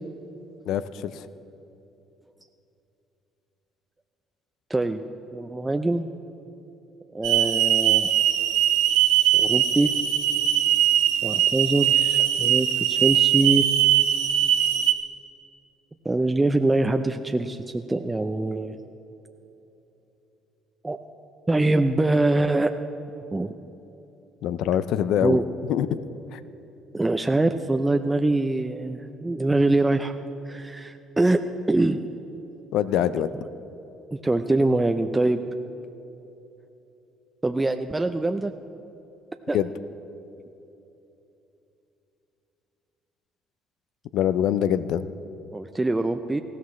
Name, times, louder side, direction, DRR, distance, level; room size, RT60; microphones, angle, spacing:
voice 1, 0.7-1.3 24.4-25.4 25.7-26.0 26.3-26.4 32.7-33.3 39.5-39.7 44.1-45.1, left 10 dB, 75° left, 15 dB, 0.5 m, -24 dB
voice 2, 4.7-5.0 5.3-6.1 7.1-8.1 9.3-9.9 11.2-13.7 16.0-18.8 20.8-21.0 21.5-22.7 23.3-23.5 25.2-25.4 26.9-30.2 30.5-31.4 31.7-32.0 34.1-35.4 37.4-38.5 39.5-39.6 45.5-46.4, right 2 dB, 15° right, 6 dB, 0.5 m, -23 dB
Hiss / Alarm, 7.2-14.9, right 11 dB, 90° right, 0.8 m, -21 dB
19.0 x 14.5 x 3.2 m, 3.0 s
supercardioid pair, 80°, 0 cm